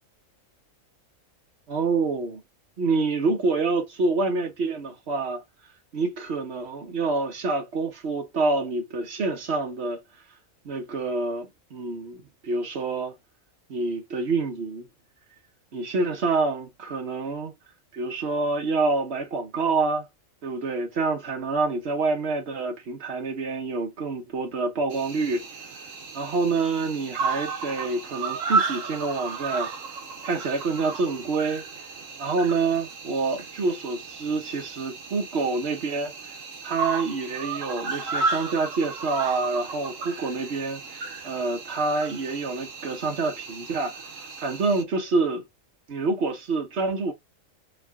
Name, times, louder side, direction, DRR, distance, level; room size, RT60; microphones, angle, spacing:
voice 1, 1.7-2.4 2.8-5.4 5.9-10.0 10.6-13.1 13.7-14.9 15.7-17.5 17.9-20.1 20.4-25.5 26.1-29.7 30.2-31.6 32.2-36.3 36.6-45.4 45.9-47.1, right 3 dB, 55° right, 1.2 m, -27 dB
Cricket, 24.9-44.8, right 4 dB, 75° right, 1.2 m, -33 dB
3.7 x 2.3 x 3.6 m
omnidirectional pair, 1.4 m